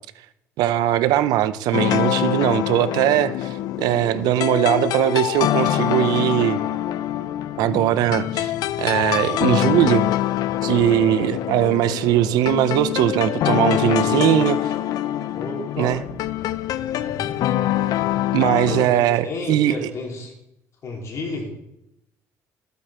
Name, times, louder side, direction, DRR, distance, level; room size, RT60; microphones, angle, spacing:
voice 1, 0.6-6.6 7.6-8.5 8.8-10.1 10.6-14.6 15.8-16.0 18.3-19.9, right 13 dB, 80° right, 14 dB, 0.7 m, -20 dB
sound 1, 1.7-18.9, left 13 dB, 70° left, 0.5 m, -24 dB
voice 2, 14.0-14.4 15.3-16.0 16.9-17.4 18.6-20.3 20.8-21.5, left 2 dB, 50° left, -1 dB, 3.9 m, -32 dB
14.0 x 8.4 x 4.4 m, 0.81 s
cardioid pair, 100°, 7 cm